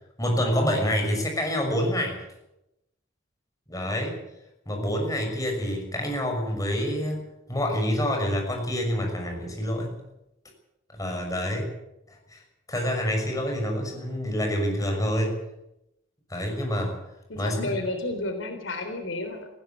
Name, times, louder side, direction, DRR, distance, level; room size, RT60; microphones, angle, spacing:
voice 1, 0.2-2.2 3.7-4.2 4.7-9.9 10.9-11.7 12.1-12.4 12.7-15.4 16.3-16.9 17.4-17.7, equal, 20° left, 2 dB, 6.2 m, -27 dB
voice 2, 17.3-19.5, left 2 dB, 85° left, 6 dB, 3.8 m, -31 dB
19.5 x 16.0 x 8.5 m, 0.88 s
head